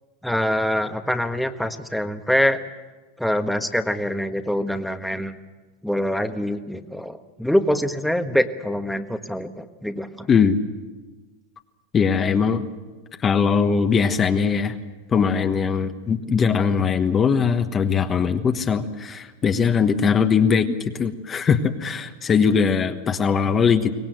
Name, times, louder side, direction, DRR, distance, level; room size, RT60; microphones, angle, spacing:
voice 1, 0.2-2.6 3.2-5.4 5.8-10.3 16.3-16.6 20.6-20.7, equal, ahead, 7 dB, 1.3 m, -24 dB
voice 2, 10.3-10.6 11.9-12.6 13.2-14.7 15.1-20.7 21.0-23.9, left 6 dB, 25° left, 7 dB, 1.3 m, -20 dB
23.5 x 18.5 x 7.9 m, 1.2 s
supercardioid pair, 125°, 0 cm